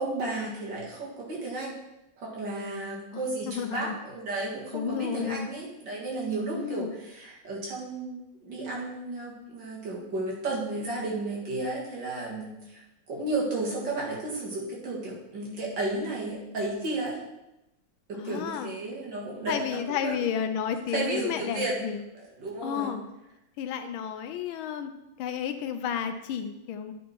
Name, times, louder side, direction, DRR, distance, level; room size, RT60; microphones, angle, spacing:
voice 1, 0.0-1.7 2.2-17.2 18.1-20.2 20.9-21.7 22.4-22.9, right 2 dB, 60° right, -4 dB, 2.4 m, -33 dB
voice 2, 3.1-4.0 4.7-5.5 6.5-6.9 18.1-18.7 19.5-22.0 22.6-23.0 23.6-24.9 25.2-26.9, left 8 dB, 80° left, 8 dB, 1.4 m, -32 dB
9.2 x 4.2 x 4.5 m, 0.91 s
omnidirectional pair, 2.3 m